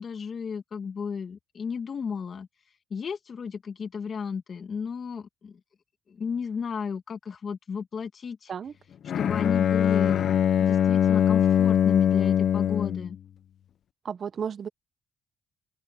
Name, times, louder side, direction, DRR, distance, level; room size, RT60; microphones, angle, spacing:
voice 1, 0.0-2.5 2.9-5.6 6.1-8.5 9.2-10.3 10.6-13.2, left 6 dB, 50° left, 2.3 m, -33 dB
Bowed string instrument, 9.1-13.1, left 9 dB, 65° left, 0.6 m, -22 dB
voice 2, 14.0-14.7, right 7 dB, 50° right, 0.8 m, -33 dB
open air
cardioid pair, 90°, 0 cm